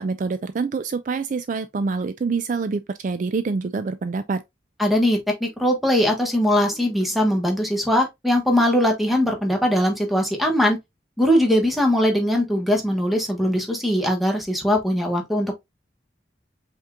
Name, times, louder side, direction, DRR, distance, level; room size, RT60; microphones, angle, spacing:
voice 1, 0.0-4.4, right 4 dB, 45° right, 0.3 m, -26 dB
voice 2, 4.8-10.8 11.2-15.5, equal, ahead, 1.3 m, -21 dB
5.4 x 3.7 x 2.4 m
head